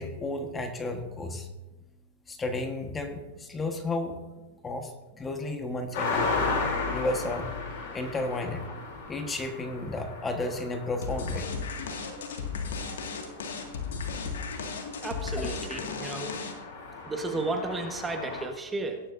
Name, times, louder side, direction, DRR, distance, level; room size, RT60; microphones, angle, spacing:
voice 1, 0.0-1.5 2.3-4.2 4.6-6.3 6.9-7.5 7.9-8.8 9.1-11.5 15.3-15.5, left 2 dB, 15° left, 5 dB, 1.4 m, -33 dB
sound 1, 5.9-18.4, left 3 dB, 60° left, 3.3 m, -36 dB
sound 2, 11.0-16.8, left 5 dB, 75° left, 2.0 m, -35 dB
voice 2, 15.0-16.3 17.1-19.1, right 2 dB, 15° right, 5 dB, 1.3 m, -33 dB
18.0 x 10.5 x 2.7 m, 1.1 s
hypercardioid pair, 110°, 0 cm